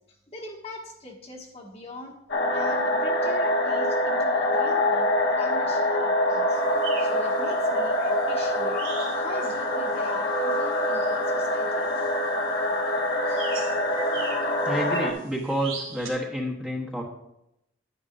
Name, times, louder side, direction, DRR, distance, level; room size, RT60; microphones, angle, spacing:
voice 1, 0.3-2.2 2.5-6.6 7.0-8.8 9.1-11.9, left 1 dB, 30° left, 0 dB, 1.4 m, -41 dB
sound 1, 2.3-15.1, left 1 dB, 55° left, 1.2 m, -25 dB
sound 2, 6.5-16.1, right 5 dB, 90° right, 2.2 m, -42 dB
voice 2, 14.6-17.0, equal, 5° right, -3 dB, 1.3 m, -29 dB
10.5 x 10.0 x 2.7 m, 0.83 s
head